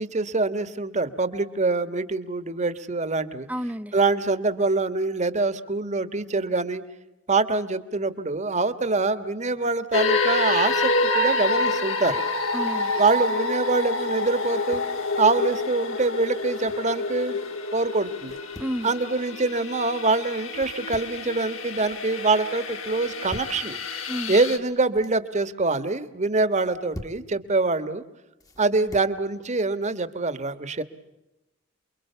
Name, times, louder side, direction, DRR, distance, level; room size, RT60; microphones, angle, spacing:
voice 1, 0.0-3.5 3.9-6.8 7.3-12.2 13.0-14.8 15.2-17.4 17.7-18.4 18.8-23.8 24.3-28.0 28.6-30.8, right 3 dB, 35° right, 1.4 m, -24 dB
voice 2, 3.5-3.9 12.5-12.9 18.6-18.9 24.1-24.3, equal, 10° right, 0.8 m, -30 dB
sound 1, 9.9-24.6, left 3 dB, 85° left, 2.7 m, -28 dB
sound 2, 14.6-15.0 16.3-16.9 18.2-18.8 20.5-21.3 21.6-22.1 23.0-23.6 24.7-25.2 26.5-27.3 28.4-29.2, equal, 20° left, 1.3 m, -44 dB
29.0 x 23.0 x 6.9 m
head